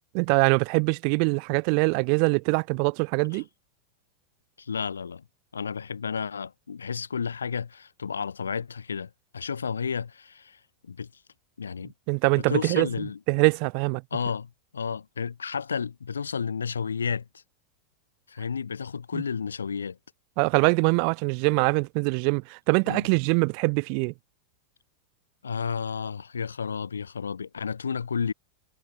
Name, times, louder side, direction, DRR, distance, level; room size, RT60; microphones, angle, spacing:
voice 1, 0.1-3.4 12.1-12.9 13.3-14.0 19.1-19.2 20.4-24.1, right 40 dB or more, 45° right, 2.3 m, -23 dB
voice 2, 4.6-5.2 5.5-11.2 11.6-11.9 12.4-13.2 14.1-17.4 18.3-20.0 22.9-23.0 25.4-28.3, left 6 dB, 70° left, 2.7 m, -32 dB
figure-of-eight pair, 90°, 0 cm